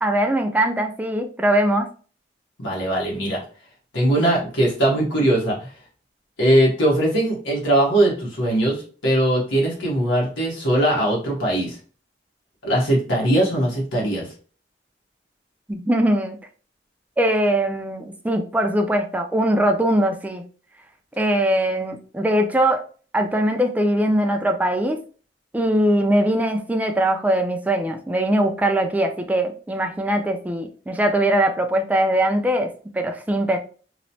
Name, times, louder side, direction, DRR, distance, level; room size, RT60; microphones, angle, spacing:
voice 1, 0.0-1.9 15.7-16.4 17.2-20.4 21.2-22.8 23.1-25.0 25.5-33.6, right 1 dB, 10° right, 4 dB, 0.3 m, -21 dB
voice 2, 2.6-3.4 3.9-5.7 6.4-11.8 12.6-14.3, right 1 dB, 90° left, -3 dB, 1.0 m, -20 dB
3.0 x 2.1 x 2.7 m, 0.39 s
head